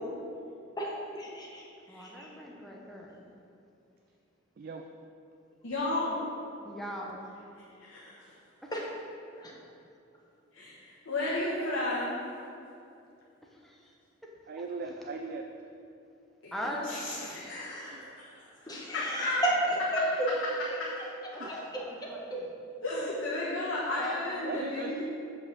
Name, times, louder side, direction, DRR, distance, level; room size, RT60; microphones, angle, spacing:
voice 1, 0.8-1.6 2.0-2.3 8.7-8.9 9.4-9.5 18.7-20.3 21.7-21.8, right 1 dB, 20° left, -3 dB, 1.1 m, -32 dB
voice 2, 1.9-3.2 6.6-7.3 8.6-8.7 13.5-13.9 14.2-14.3 16.5-17.6 21.3-22.5 24.0-24.5, left 1 dB, ahead, -2 dB, 0.8 m, -40 dB
voice 3, 5.6-6.2 7.8-8.1 10.5-12.2 16.4-16.5 16.8-19.5 22.8-25.0, left 2 dB, 90° left, -7 dB, 1.2 m, -33 dB
voice 4, 14.5-15.7 17.9-18.2 21.4-21.5 24.4-25.0, right 4 dB, 45° right, 3 dB, 0.3 m, -39 dB
5.5 x 4.9 x 6.5 m, 2.6 s
head